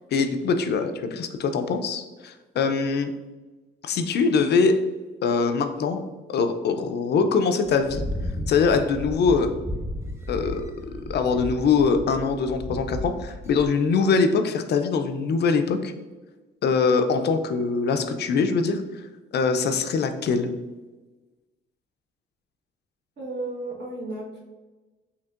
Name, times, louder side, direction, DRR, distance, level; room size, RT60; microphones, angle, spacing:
voice 1, 0.1-3.1 3.8-4.8 5.2-6.0 6.3-8.0 8.5-9.5 10.3-10.7 11.1-15.9 16.6-19.0 19.3-20.5, left 5 dB, 55° left, 7 dB, 0.4 m, -23 dB
sound 1, 7.6-13.6, left 1 dB, 15° right, 0.6 m, -34 dB
voice 2, 23.2-24.4, right 2 dB, 60° right, -3 dB, 1.3 m, -33 dB
4.4 x 2.9 x 2.4 m, 1.2 s
cardioid pair, 90°, 20 cm